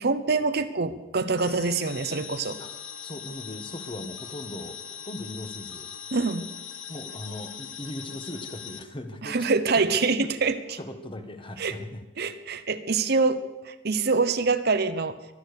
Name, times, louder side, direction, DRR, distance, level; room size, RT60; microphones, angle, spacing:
voice 1, 0.0-2.6 6.1-6.5 9.2-10.8 11.6-11.8 12.2-15.2, right 4 dB, 55° right, 10 dB, 1.0 m, -25 dB
sound 1, 1.4-8.8, left 8 dB, 85° left, 0.9 m, -40 dB
voice 2, 3.0-5.9 6.9-9.5 10.2-10.3 10.8-12.1, left 1 dB, 25° left, 7 dB, 1.4 m, -39 dB
23.5 x 8.9 x 6.6 m, 1.1 s
head